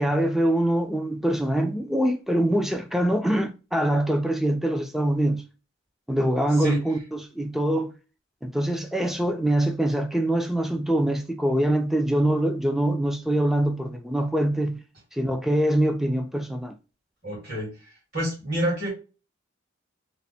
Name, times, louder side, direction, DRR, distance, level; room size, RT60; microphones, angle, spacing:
voice 1, 0.0-5.4 6.1-7.9 8.4-14.8 15.1-16.8, right 1 dB, ahead, 0.3 m, -24 dB
voice 2, 17.2-17.7 18.1-18.9, right 1 dB, 50° right, 2.0 m, -27 dB
3.2 x 2.1 x 4.0 m
head